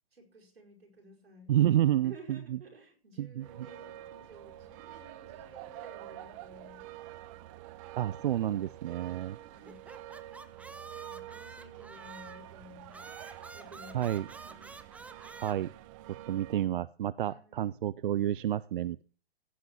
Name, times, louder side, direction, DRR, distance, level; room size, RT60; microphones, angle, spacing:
voice 1, 0.1-1.5 2.0-7.0 9.4-9.9 11.0-13.1 13.5-14.1 14.4-14.6 17.3-17.7, right 1 dB, 85° right, 0 dB, 5.2 m, -54 dB
voice 2, 1.5-2.6 3.2-3.7 8.0-9.4 13.9-14.3 15.4-15.7 16.1-19.0, right 12 dB, 60° right, 18 dB, 0.5 m, -30 dB
sound 1, 3.4-16.7, right 14 dB, 35° right, 0.8 m, -48 dB
sound 2, 9.7-12.5 12.9-15.5, right 3 dB, 5° right, 0.6 m, -49 dB
16.0 x 7.8 x 4.6 m, 0.38 s
figure-of-eight pair, 120°, 30 cm